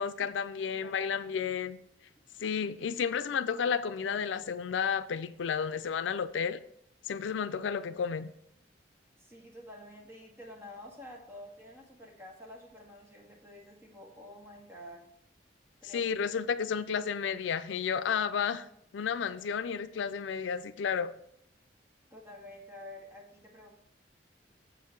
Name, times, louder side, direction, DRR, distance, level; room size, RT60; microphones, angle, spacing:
voice 1, 0.0-1.8 2.4-6.6 7.1-8.3 15.9-18.6 18.9-21.1, left 7 dB, 85° left, 0.4 m, -32 dB
voice 2, 0.7-1.4 9.2-15.0 15.8-16.1 22.1-23.7, left 1 dB, 15° right, 1.6 m, -49 dB
7.1 x 4.7 x 5.7 m
head